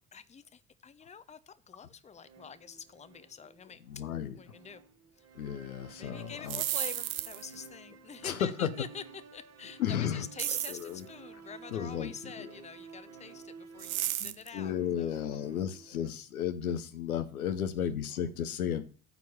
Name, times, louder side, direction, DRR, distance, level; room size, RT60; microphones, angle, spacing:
voice 1, 0.1-3.8 4.4-4.8 6.0-9.0 9.3-15.5, left 6 dB, 15° left, 13 dB, 0.8 m, -46 dB
sound 1, 2.2-16.1, right 5 dB, 35° right, 1.6 m, -53 dB
voice 2, 3.9-4.4 5.3-6.6 8.2-8.7 9.8-10.3 10.7-11.0 11.7-12.6 14.2-18.8, left 9 dB, 75° left, 10 dB, 1.0 m, -34 dB
sound 2, 6.3-7.6 10.4-10.9 13.8-14.5, right 13 dB, 70° right, 0.7 m, -33 dB
9.7 x 4.6 x 7.2 m, 0.39 s
figure-of-eight pair, 55°, 43 cm